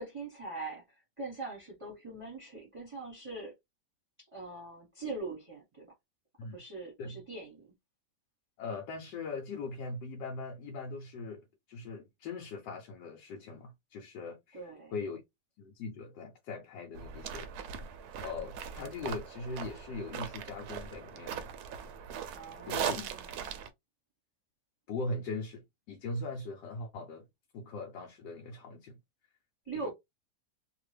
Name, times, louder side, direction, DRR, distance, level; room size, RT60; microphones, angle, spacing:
voice 1, 0.0-3.6 4.3-5.9 6.5-7.7 14.5-14.9 22.3-23.6 29.6-29.9, right 3 dB, 25° right, 0.9 m, -42 dB
voice 2, 8.6-15.2 15.6-17.5 18.2-21.5 22.7-23.1 24.9-27.3 27.5-28.9 29.7-29.9, left 3 dB, 80° left, 1.3 m, -40 dB
sound 1, 16.9-23.7, right 7 dB, 70° right, 1.0 m, -40 dB
2.9 x 2.4 x 3.2 m
omnidirectional pair, 1.9 m